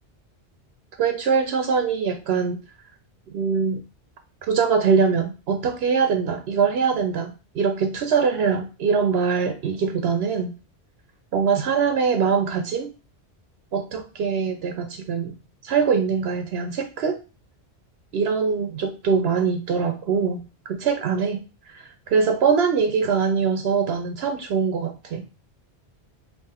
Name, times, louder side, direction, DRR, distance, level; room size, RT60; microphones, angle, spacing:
voice 1, 1.0-2.6 3.3-3.8 4.5-10.5 11.3-12.9 13.7-15.4 15.6-17.2 18.1-20.4 20.7-21.4 22.1-25.3, right 5 dB, 70° right, 6 dB, 0.8 m, -23 dB
3.6 x 2.9 x 4.2 m, 0.32 s
omnidirectional pair, 1.1 m